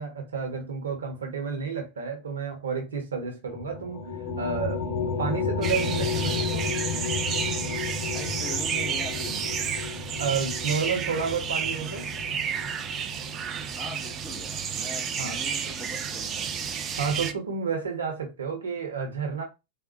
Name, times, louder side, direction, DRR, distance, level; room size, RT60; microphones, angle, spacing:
voice 1, 0.0-4.1 4.4-4.8 5.2-6.7 10.2-12.1 15.2-15.4 17.0-19.4, right 5 dB, 70° right, 0.8 m, -31 dB
sound 1, 3.5-13.2, left 5 dB, 55° left, 0.9 m, -32 dB
sound 2, 5.6-17.3, right 7 dB, 25° right, 0.3 m, -31 dB
voice 2, 8.1-9.4 13.7-16.6, left 2 dB, ahead, 0.8 m, -41 dB
3.4 x 2.0 x 2.8 m
figure-of-eight pair, 90°, 0 cm